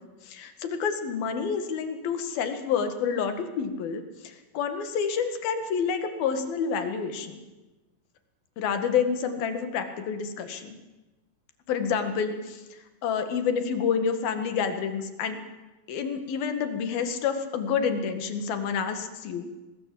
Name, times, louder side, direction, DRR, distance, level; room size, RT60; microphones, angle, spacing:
voice 1, 0.2-7.4 8.6-10.8 11.7-12.6 13.0-15.4 15.9-19.5, left 6 dB, 75° left, 8 dB, 3.8 m, -28 dB
24.0 x 19.5 x 8.6 m, 1.1 s
omnidirectional pair, 4.3 m